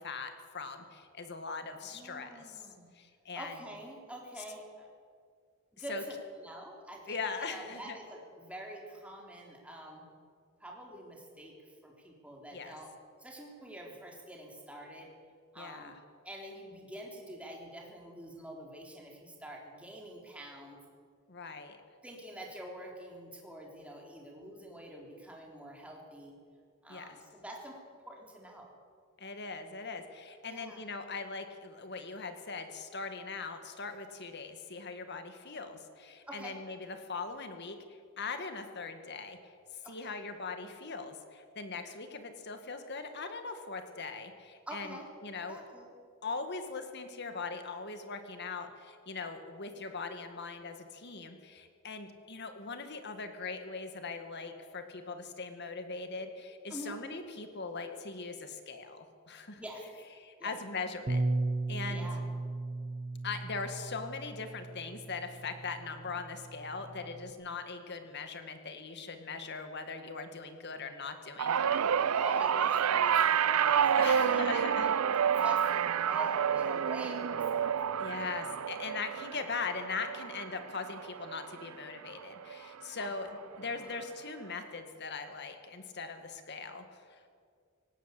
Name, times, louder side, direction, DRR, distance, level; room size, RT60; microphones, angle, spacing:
voice 1, 0.0-2.7 2.9-3.5 5.9-6.0 7.1-8.0 12.5-12.8 15.6-16.0 21.3-21.8 26.9-27.2 29.2-39.5 39.9-45.0 45.2-45.6 46.2-59.6 60.2-61.2 61.7-62.1 63.2-72.2 74.0-74.9 78.0-87.2, left 4 dB, 50° left, 7 dB, 2.0 m, -40 dB
voice 2, 1.8-2.9 3.4-4.9 5.7-10.1 10.6-11.5 11.8-12.9 13.2-15.1 15.5-15.9 16.2-20.8 22.0-26.3 26.8-27.8 28.1-28.7 30.4-30.8 36.3-36.6 39.8-40.2 44.7-45.0 45.5-45.9 56.7-57.0 59.6-59.9 60.4-60.6 61.9-62.3 72.2-74.9 75.4-77.8 83.0-83.1 83.5-84.0, right 1 dB, 5° right, -1 dB, 3.6 m, -46 dB
Bass guitar, 61.1-67.3, right 2 dB, 40° right, 0.9 m, -36 dB
sound 1, 71.4-81.8 82.2-82.6 83.7-83.8, right 8 dB, 85° right, 0.5 m, -29 dB
18.0 x 18.0 x 8.4 m, 2.1 s
head